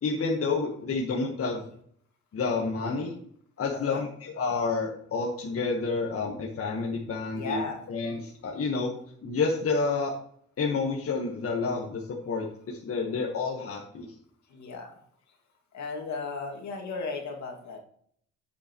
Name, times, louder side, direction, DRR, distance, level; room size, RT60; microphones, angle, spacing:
voice 1, 0.0-1.7 2.3-3.2 3.6-7.6 7.9-8.9 9.2-10.1 10.6-14.1, left 4 dB, 50° left, 0 dB, 1.5 m, -29 dB
voice 2, 7.3-7.9 14.5-15.0 15.7-17.8, left 4 dB, 70° left, 2 dB, 2.3 m, -35 dB
8.5 x 8.0 x 3.1 m, 0.63 s
cardioid pair, 90°, 30 cm